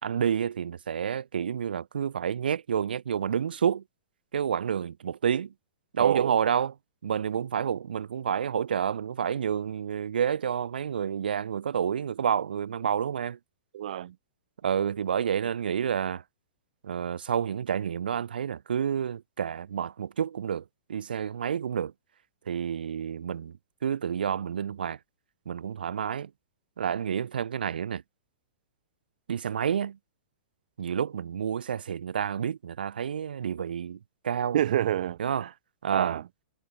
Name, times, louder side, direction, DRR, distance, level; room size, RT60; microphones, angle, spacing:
voice 1, 0.0-3.8 4.3-5.5 5.9-6.7 7.0-13.4 14.6-16.2 16.8-20.6 20.9-21.9 22.5-23.6 23.8-25.0 25.5-26.3 26.8-28.0 29.3-30.0 30.8-34.0 34.2-34.6 35.2-35.5 35.8-36.2, right 8 dB, 90° right, 3.6 m, -29 dB
voice 2, 6.0-6.3 13.7-14.1 34.5-35.5 35.9-36.2, right 11 dB, 65° right, 4.1 m, -28 dB
hypercardioid pair, 160°, 5 cm